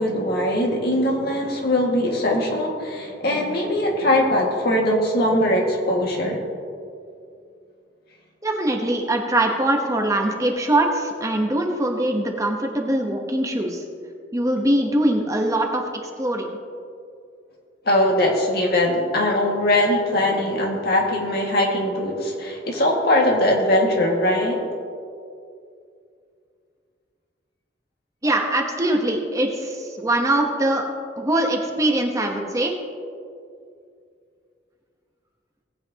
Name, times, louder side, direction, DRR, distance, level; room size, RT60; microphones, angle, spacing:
voice 1, 0.0-6.4 17.9-24.6, left 1 dB, 60° left, -1 dB, 2.0 m, -21 dB
voice 2, 8.4-13.8 14.3-16.5 28.2-30.8 31.2-32.7, right 1 dB, 20° right, 2 dB, 1.0 m, -22 dB
18.5 x 8.4 x 2.9 m, 2.4 s
head